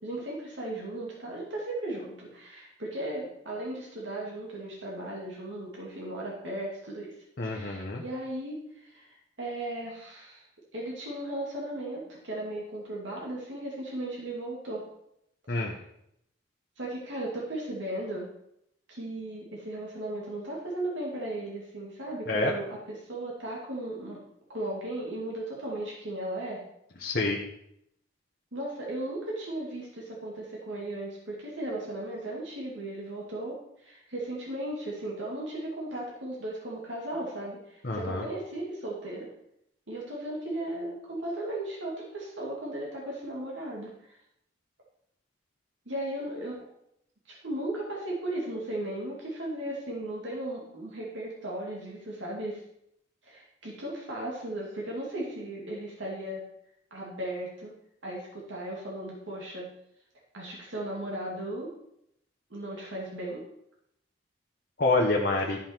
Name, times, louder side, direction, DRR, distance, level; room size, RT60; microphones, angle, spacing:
voice 1, 0.0-7.1 7.4-10.4 10.7-14.8 15.5-15.7 16.8-18.3 18.9-24.2 24.5-26.6 28.5-39.3 39.9-44.2 45.9-46.6 47.3-52.6 53.2-56.4 56.9-57.7 58.0-59.7 60.3-61.7 62.5-63.4, right 1 dB, 80° right, -4 dB, 2.5 m, -36 dB
voice 2, 7.4-8.0 15.5-15.8 22.3-22.5 27.0-27.4 37.8-38.2 64.8-65.6, left 2 dB, 50° left, -1 dB, 1.1 m, -27 dB
13.0 x 5.7 x 4.5 m, 0.76 s
head